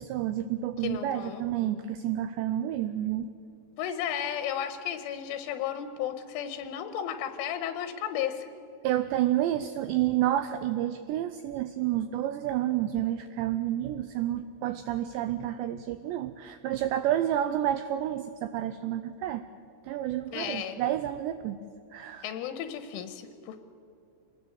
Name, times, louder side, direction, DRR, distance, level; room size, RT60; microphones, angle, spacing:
voice 1, 0.0-3.3 8.8-19.4 19.8-21.6 21.9-22.3, right 12 dB, 85° right, 11 dB, 2.5 m, -29 dB
voice 2, 0.8-1.4 3.8-8.5 20.3-20.8 22.2-23.6, left 9 dB, 80° left, 9 dB, 3.4 m, -34 dB
25.0 x 19.5 x 7.8 m, 2.4 s
omnidirectional pair, 5.8 m